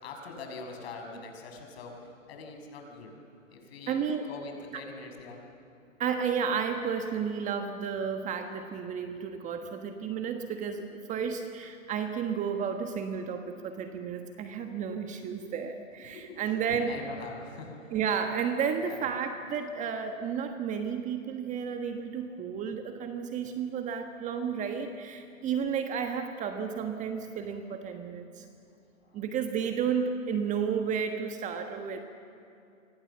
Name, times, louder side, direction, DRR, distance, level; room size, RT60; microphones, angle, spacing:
voice 1, 0.0-1.9 2.3-3.1 3.5-5.4 16.1-16.4 16.7-17.9 18.8-19.0 29.1-29.2, left 3 dB, 50° left, 3 dB, 6.7 m, -43 dB
voice 2, 3.9-4.3 6.0-17.0 17.9-28.4 29.1-32.0, right 7 dB, 20° right, 6 dB, 1.3 m, -32 dB
28.0 x 25.0 x 7.3 m, 2.6 s
hypercardioid pair, 125°, 40 cm